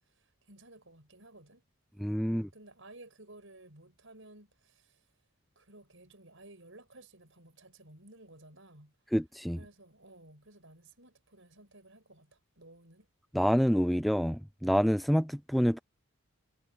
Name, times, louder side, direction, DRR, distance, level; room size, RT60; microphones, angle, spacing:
voice 1, 0.0-1.6 2.2-5.0 5.5-8.9 9.5-13.1, right 2 dB, 65° right, 6.9 m, -55 dB
voice 2, 2.0-2.5 9.1-9.6 13.3-15.8, equal, ahead, 0.3 m, -27 dB
head